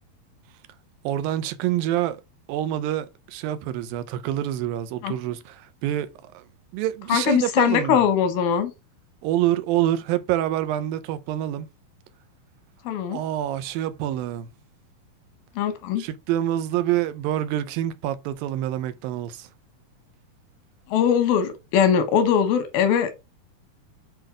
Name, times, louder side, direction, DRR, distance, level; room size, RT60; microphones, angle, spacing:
voice 1, 1.0-2.2 2.5-6.4 6.7-8.0 9.2-11.7 13.1-14.5 16.0-19.5, right 12 dB, 80° right, 2.5 m, -26 dB
voice 2, 7.1-8.7 12.8-13.2 15.6-16.1 20.9-23.1, left 8 dB, 90° left, 3.0 m, -21 dB
7.9 x 3.0 x 4.9 m
omnidirectional pair, 4.1 m